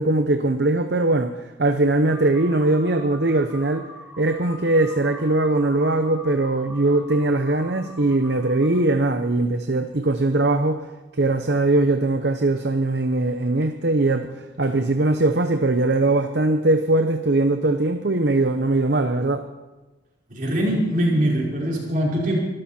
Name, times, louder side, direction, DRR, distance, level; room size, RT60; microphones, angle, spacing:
voice 1, 0.0-1.3 1.6-3.9 4.2-10.8 11.2-14.3 14.6-19.4, right 2 dB, 60° right, 7 dB, 0.9 m, -21 dB
sound 1, 2.1-8.8, equal, 10° right, 4.4 m, -42 dB
voice 2, 20.3-22.4, right 1 dB, 45° right, -3 dB, 5.3 m, -22 dB
24.0 x 13.0 x 4.4 m, 1.2 s
head